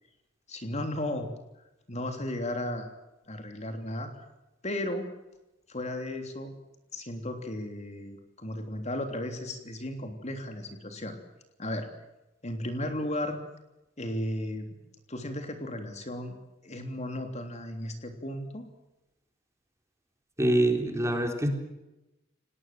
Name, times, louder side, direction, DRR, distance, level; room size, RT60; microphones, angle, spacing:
voice 1, 0.5-1.3 1.9-2.9 3.3-4.2 4.6-5.1 5.7-6.5 6.9-11.2 11.6-11.8 12.4-13.4 14.0-14.7 15.1-16.3 16.6-18.6, left 1 dB, 35° left, 6 dB, 3.3 m, -34 dB
voice 2, 20.4-21.5, right 1 dB, 15° right, 4 dB, 3.8 m, -25 dB
29.0 x 19.0 x 7.7 m, 0.97 s
head